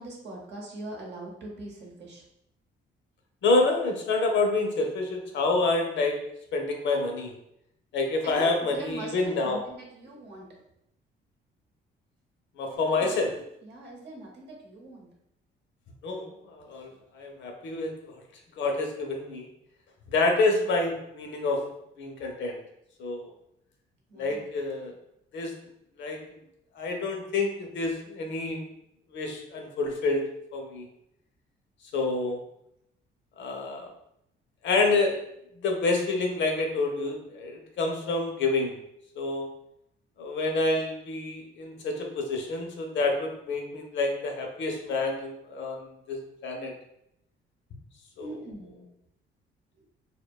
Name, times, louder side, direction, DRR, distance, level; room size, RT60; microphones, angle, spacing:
voice 1, 0.0-2.2 8.2-10.5 12.7-15.1 24.1-24.5 48.2-48.8, right 2 dB, 60° right, -1 dB, 0.8 m, -42 dB
voice 2, 3.4-6.2 6.5-7.3 7.9-9.6 12.6-13.3 16.0-17.9 18.6-19.5 20.1-21.6 22.0-22.6 23.0-23.3 24.2-24.9 25.3-25.5 26.0-26.2 26.8-28.7 29.1-30.2 30.5-30.9 31.9-32.4 33.4-33.9 34.6-35.2 35.6-38.7 39.2-39.5 40.2-46.7 48.2-48.3, left 3 dB, 70° left, 2 dB, 0.5 m, -28 dB
2.6 x 2.1 x 2.2 m, 0.79 s
cardioid pair, 90°, 20 cm